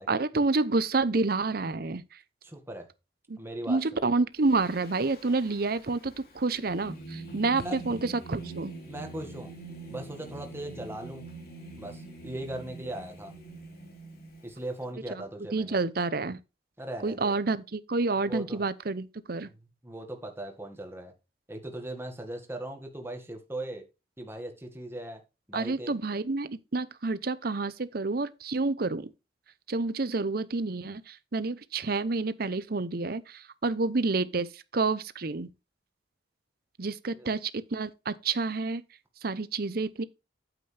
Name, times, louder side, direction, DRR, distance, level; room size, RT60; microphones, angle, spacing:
voice 1, 0.1-2.0 3.3-3.4 3.7-8.7 15.5-16.4 17.0-19.5 25.5-29.1 29.7-35.5 36.8-38.8 39.2-40.0, right 3 dB, 55° right, 0.8 m, -29 dB
voice 2, 2.4-2.9 3.4-3.8 7.6-8.0 8.9-9.5 9.9-11.3 11.8-13.3 14.4-15.8 16.8-17.3 18.3-18.6 19.4-19.6 19.8-21.1 21.5-23.8 24.2-25.2 25.5-26.0 37.1-37.3, right 1 dB, 15° right, 1.9 m, -39 dB
Singing, 4.4-14.8, right 2 dB, 55° left, 2.8 m, -45 dB
8.9 x 8.2 x 3.4 m
head